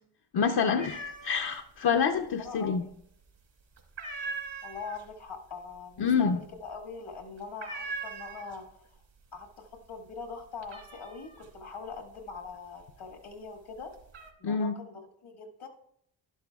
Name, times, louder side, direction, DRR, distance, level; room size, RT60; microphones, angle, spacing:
voice 1, 0.3-2.8 6.0-6.4 14.4-14.7, left 6 dB, 50° left, 3 dB, 0.7 m, -27 dB
sound 1, 0.8-1.6 1.9-2.7 3.0-3.4 3.8-8.9 9.2-9.7 10.0-13.2 13.7-14.3, right 3 dB, 70° right, 2.4 m, -41 dB
voice 2, 1.9-2.9 4.6-8.9 9.3-13.9 14.4-15.7, left 5 dB, 80° left, 2 dB, 1.7 m, -42 dB
11.5 x 11.0 x 2.3 m, 0.70 s
supercardioid pair, 45°, 48 cm